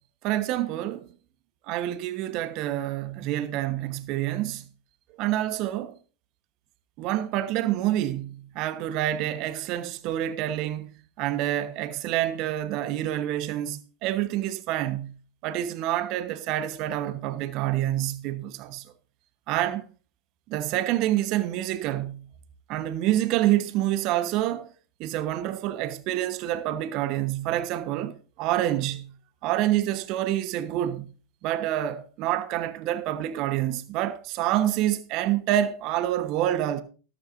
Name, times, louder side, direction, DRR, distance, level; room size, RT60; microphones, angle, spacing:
voice 1, 0.2-1.1 1.7-4.6 5.2-5.9 7.0-15.1 15.4-18.8 19.5-19.9 20.5-22.3 22.7-24.7 25.0-29.1 29.4-31.1 31.4-36.8, right 13 dB, 50° right, 1.1 m, -27 dB
13.0 x 12.5 x 2.6 m
hypercardioid pair, 95°, 0 cm